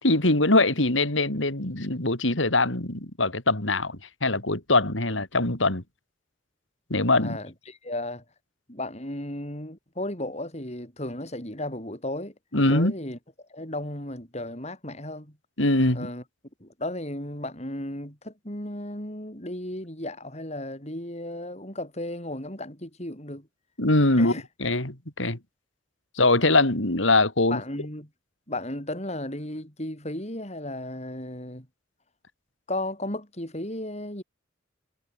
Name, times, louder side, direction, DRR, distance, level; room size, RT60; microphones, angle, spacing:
voice 1, 0.0-5.8 6.9-7.4 12.5-12.9 15.6-16.1 23.8-24.3 24.6-25.4 26.2-27.6, left 2 dB, 85° left, 4.2 m, -22 dB
voice 2, 7.2-8.2 8.7-13.2 13.5-15.4 15.9-16.2 16.6-23.5 24.2-24.4 27.5-28.1 28.5-31.7 32.7-34.2, left 1 dB, 35° left, 7.3 m, -35 dB
head